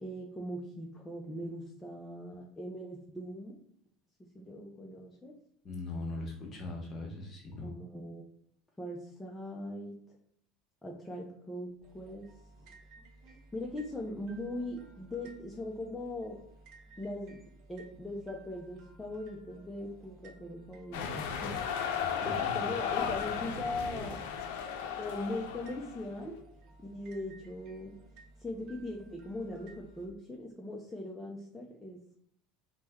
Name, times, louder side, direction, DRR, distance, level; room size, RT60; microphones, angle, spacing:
voice 1, 0.0-3.6 4.2-5.3 7.6-8.2 8.8-10.0 10.8-12.3 13.5-16.4 17.0-17.4 17.7-21.6 22.3-24.2 25.0-26.4 26.8-28.0 28.4-32.2, left 1 dB, 5° left, -3 dB, 0.4 m, -40 dB
voice 2, 5.6-7.8 21.9-22.7, left 2 dB, 30° left, 0 dB, 1.0 m, -40 dB
sound 1, 11.8-30.1, right 2 dB, 55° right, 0.7 m, -57 dB
sound 2, 20.9-26.1, left 7 dB, 85° left, 0.5 m, -35 dB
3.2 x 2.1 x 3.3 m, 0.69 s
cardioid pair, 150°, 0 cm